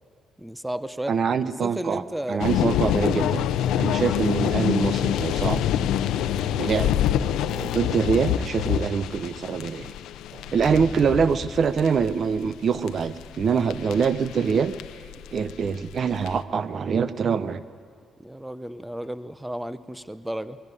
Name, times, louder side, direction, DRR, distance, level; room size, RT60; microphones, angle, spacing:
voice 1, 0.4-1.1 1.4-2.5 3.2-3.4 13.9-14.0 18.2-20.6, right 1 dB, 5° right, 14 dB, 0.8 m, -33 dB
voice 2, 1.1-2.0 2.3-3.4 3.8-5.6 6.6-6.9 7.4-9.9 10.3-14.7 15.3-17.6, right 6 dB, 50° right, 14 dB, 0.6 m, -24 dB
sound 1, 2.4-16.4, left 10 dB, 90° left, 0.7 m, -26 dB
sound 2, 10.6-12.2 13.0-13.2 19.0-19.1, left 4 dB, 40° left, 1.7 m, -37 dB
21.5 x 16.0 x 9.7 m, 2.1 s
cardioid pair, 90°, 0 cm